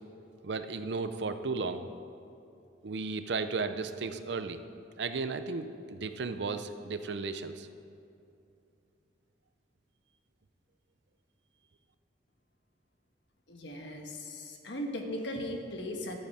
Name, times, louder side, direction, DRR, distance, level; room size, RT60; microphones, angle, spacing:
voice 1, 0.4-1.9 2.8-4.6 5.0-7.7, right 4 dB, 70° right, 10 dB, 0.6 m, -34 dB
voice 2, 13.5-16.2, left 1 dB, 75° left, 3 dB, 1.4 m, -38 dB
13.5 x 9.0 x 4.9 m, 2.6 s
head